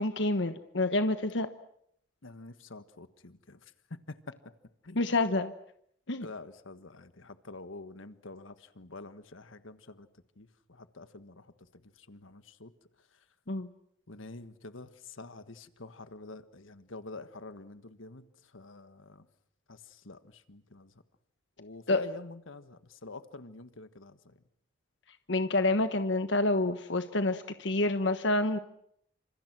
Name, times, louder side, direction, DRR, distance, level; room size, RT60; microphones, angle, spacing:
voice 1, 0.0-1.5 4.9-5.5 6.1-6.3 13.5-13.7 21.9-22.0 25.3-28.6, left 2 dB, 65° left, 9 dB, 1.2 m, -28 dB
voice 2, 2.2-3.6 3.9-4.2 4.8-5.1 6.2-10.1 10.4-11.5 11.7-12.7 14.1-19.2 19.7-20.9 21.6-24.4, left 3 dB, 85° left, 11 dB, 1.5 m, -47 dB
28.5 x 26.5 x 6.1 m, 0.71 s
head